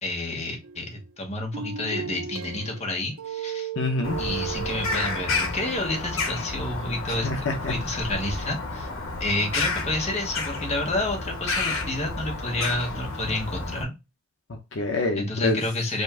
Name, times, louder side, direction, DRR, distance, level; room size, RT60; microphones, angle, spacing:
voice 1, 0.0-3.7 4.2-7.3 7.7-8.9 9.2-13.9 15.2-16.0, left 2 dB, 30° left, 1 dB, 1.2 m, -29 dB
sound 1, 0.6-1.1 1.5-5.8, right 7 dB, 85° right, 0.6 m, -36 dB
voice 2, 3.8-4.2 7.1-7.7 14.5-15.6, left 2 dB, 60° left, 2 dB, 0.7 m, -27 dB
Bird vocalization bird call bird song, 4.0-13.8, left 3 dB, 80° left, 1.1 m, -31 dB
5.2 x 2.5 x 3.6 m, 0.25 s
head